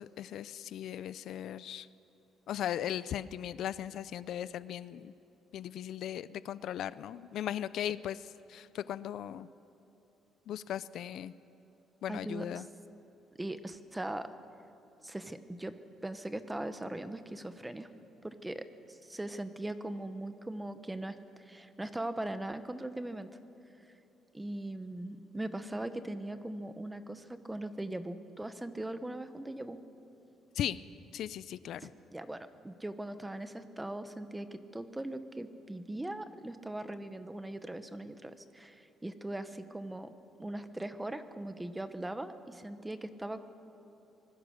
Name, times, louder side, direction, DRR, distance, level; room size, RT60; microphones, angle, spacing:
voice 1, 0.0-1.9 2.5-5.1 5.5-8.2 8.5-9.5 10.5-11.3 12.0-12.7 30.5-30.8 31.1-31.9, left 10 dB, 65° left, 16 dB, 0.5 m, -37 dB
voice 2, 12.1-12.6 13.4-14.3 15.0-15.7 16.0-17.9 18.2-23.3 24.3-29.8 31.8-40.1 40.4-43.4, right 1 dB, 10° right, 10 dB, 0.9 m, -40 dB
25.5 x 20.0 x 6.5 m, 2.9 s
cardioid pair, 150°, 0 cm